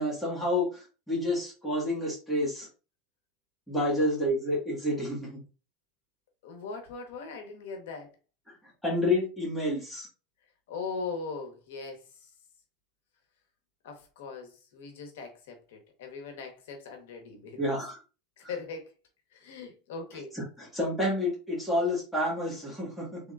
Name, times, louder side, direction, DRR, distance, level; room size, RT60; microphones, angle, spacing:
voice 1, 0.0-2.7 3.7-5.4 8.8-10.1 17.6-18.0 20.3-23.2, left 1 dB, ahead, 1.5 m, -29 dB
voice 2, 6.4-8.1 10.7-12.0 13.8-17.6 18.4-18.9 19.3-20.3, left 4 dB, 85° left, 1.1 m, -40 dB
3.7 x 3.5 x 2.4 m
supercardioid pair, 175°, 0 cm